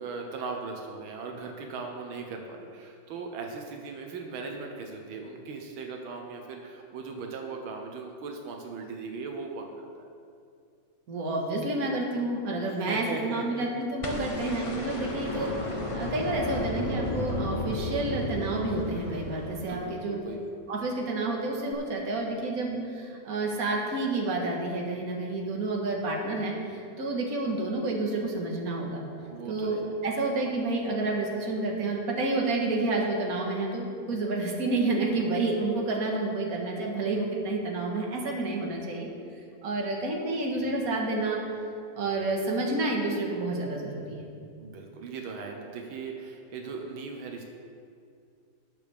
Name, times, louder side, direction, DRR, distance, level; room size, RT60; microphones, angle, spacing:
voice 1, 0.0-10.1 12.7-13.7 15.3-15.8 19.7-20.5 29.2-29.9 44.6-47.5, right 4 dB, 85° right, 2 dB, 1.7 m, -39 dB
voice 2, 11.1-15.5 15.9-20.2 20.7-29.0 29.5-39.1 39.6-41.4 41.9-44.3, right 2 dB, 50° right, -1 dB, 1.9 m, -29 dB
sound 1, 14.0-20.2 21.7-21.8, left 1 dB, 35° left, 0.5 m, -33 dB
19.0 x 6.9 x 3.5 m, 2.4 s
omnidirectional pair, 2.2 m